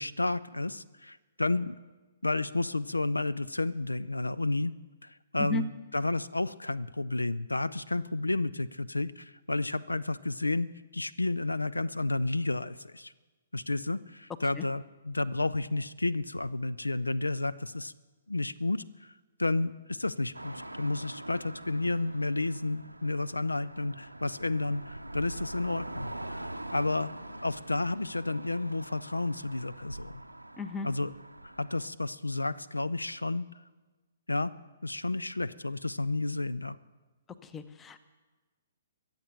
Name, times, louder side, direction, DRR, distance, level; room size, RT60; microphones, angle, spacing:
voice 1, 0.0-1.8 2.2-4.7 5.0-13.1 13.5-17.9 18.3-19.1 19.4-27.1 27.4-30.1 30.8-31.1 31.4-33.4 34.3-34.5 34.8-36.8, left 2 dB, 80° left, 17 dB, 0.4 m, -31 dB
sound 1, 20.3-31.9, right 1 dB, 90° right, 0.7 m, -44 dB
voice 2, 30.6-30.9 37.4-38.0, left 3 dB, 15° left, 13 dB, 0.8 m, -35 dB
22.5 x 7.8 x 7.0 m, 1.3 s
figure-of-eight pair, 120°, 0 cm